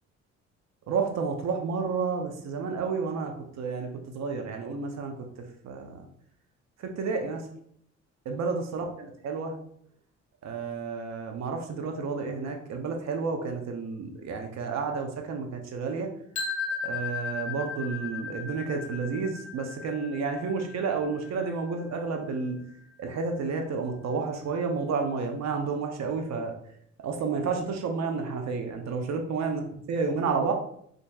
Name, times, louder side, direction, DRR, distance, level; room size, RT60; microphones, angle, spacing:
voice 1, 0.9-5.2 5.6-6.1 6.8-7.5 8.3-9.6 10.4-16.1 16.8-22.6 23.0-26.5 27.0-29.6 29.9-30.5, right 4 dB, 60° right, 4 dB, 0.6 m, -31 dB
sound 1, 16.4-22.3, left 5 dB, 65° left, 0.9 m, -36 dB
4.4 x 2.6 x 2.3 m, 0.68 s
cardioid pair, 90°, 30 cm